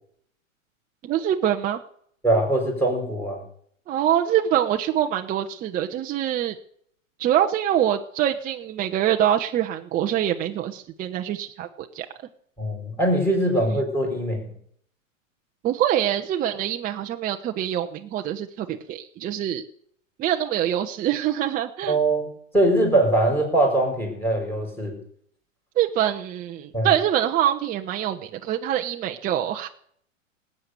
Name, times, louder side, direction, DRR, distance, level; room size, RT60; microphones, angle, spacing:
voice 1, 1.0-1.8 3.9-6.5 7.2-12.1 13.6-13.8 15.6-19.6 20.2-22.0 25.8-29.7, right 11 dB, 20° right, 4 dB, 0.8 m, -24 dB
voice 2, 2.2-3.4 12.6-14.4 21.9-22.3 22.5-24.9 26.7-26.9, right 1 dB, 5° left, 1 dB, 5.5 m, -22 dB
19.0 x 8.5 x 6.8 m, 0.65 s
hypercardioid pair, 120°, 40 cm